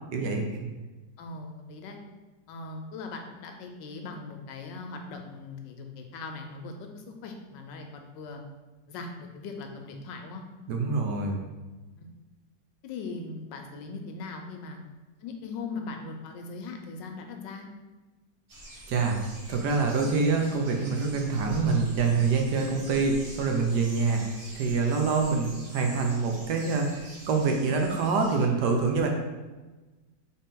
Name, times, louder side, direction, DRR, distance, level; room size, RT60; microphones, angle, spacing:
voice 1, 0.1-0.6 10.7-11.4 18.9-19.2 19.5-29.1, right 4 dB, 70° right, 2 dB, 1.2 m, -26 dB
voice 2, 1.2-2.0 2.5-8.4 8.9-10.4 12.0-12.1 12.8-14.8 15.2-17.7, left 3 dB, 80° left, 4 dB, 1.3 m, -40 dB
Birds in Tree, 18.5-28.4, right 1 dB, 55° right, 1.5 m, -45 dB
4.1 x 3.5 x 3.6 m, 1.2 s
omnidirectional pair, 2.0 m